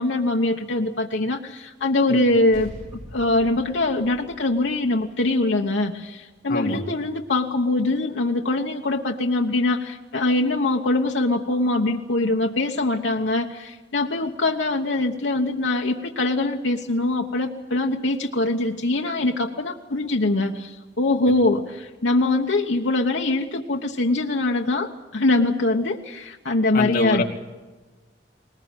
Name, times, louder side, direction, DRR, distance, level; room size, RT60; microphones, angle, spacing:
voice 1, 0.0-2.7 3.1-27.2, left 2 dB, 90° left, 2 dB, 1.1 m, -23 dB
sound 1, 2.5-7.3, equal, 40° right, 3.7 m, -45 dB
voice 2, 6.5-6.8 26.7-27.2, left 2 dB, 55° left, 0 dB, 2.4 m, -25 dB
20.5 x 20.0 x 9.0 m, 1.2 s
head